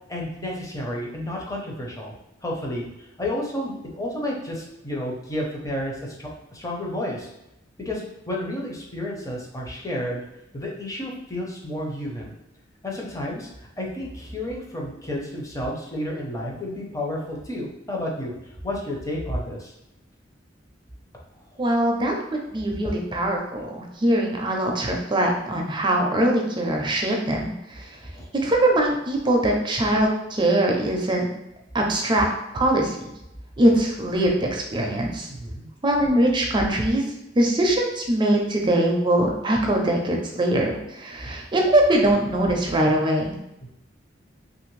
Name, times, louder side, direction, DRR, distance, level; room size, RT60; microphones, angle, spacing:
voice 1, 0.1-2.1 2.4-7.3 7.8-10.2 10.5-12.4 12.8-13.5 13.8-19.7 28.1-28.2 35.3-35.7 43.6-43.7, left 1 dB, 20° left, -2 dB, 0.6 m, -31 dB
voice 2, 21.6-22.1 22.5-27.8 28.4-31.3 31.7-32.3 32.5-33.1 33.6-35.3 35.8-37.0 37.4-43.4, right 1 dB, 25° right, 1 dB, 0.4 m, -22 dB
2.9 x 2.5 x 3.1 m, 0.88 s
head